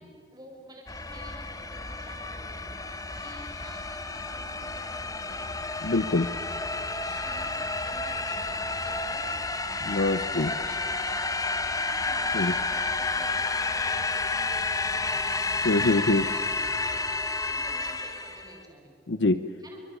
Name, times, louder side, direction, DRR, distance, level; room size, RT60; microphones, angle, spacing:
voice 1, 0.0-5.8 6.6-9.4 10.3-18.9 19.6-19.8, right 1 dB, 20° right, 1 dB, 5.9 m, -51 dB
sound 1, 0.9-18.6, left 3 dB, 20° left, 1.3 m, -31 dB
voice 2, 5.8-6.3 9.8-10.5 12.3-12.5 15.6-16.2 19.1-19.4, left 2 dB, 70° left, 11 dB, 0.7 m, -24 dB
28.5 x 24.5 x 8.4 m, 2.8 s
head